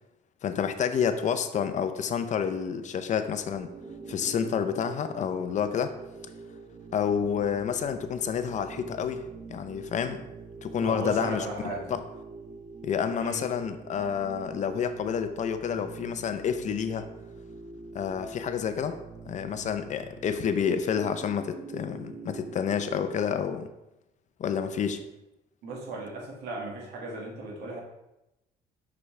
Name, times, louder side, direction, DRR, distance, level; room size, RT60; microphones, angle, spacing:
voice 1, 0.4-3.7 4.1-5.9 6.9-9.2 9.5-10.2 10.6-11.5 11.9-12.0 12.8-17.1 17.9-19.0 19.3-23.7 24.4-25.0, left 7 dB, 45° left, 9 dB, 0.6 m, -29 dB
sound 1, 3.2-23.2, right 4 dB, 25° right, 0.9 m, -45 dB
voice 2, 10.8-11.9 13.1-13.5 25.6-27.8, right 2 dB, 80° right, -1 dB, 1.8 m, -36 dB
6.1 x 6.0 x 3.2 m, 0.92 s
cardioid pair, 110°, 17 cm